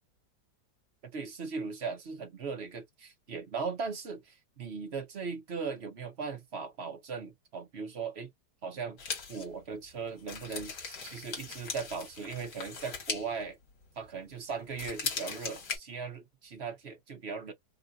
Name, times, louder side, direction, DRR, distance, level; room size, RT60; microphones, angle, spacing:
voice 1, 1.0-8.3 8.6-9.0 9.3-13.6 14.0-17.5, right 5 dB, 45° right, 1.0 m, -38 dB
sound 1, 9.0-14.3 14.6-15.8, left 5 dB, 60° left, 1.7 m, -39 dB
3.7 x 2.5 x 2.4 m
omnidirectional pair, 1.8 m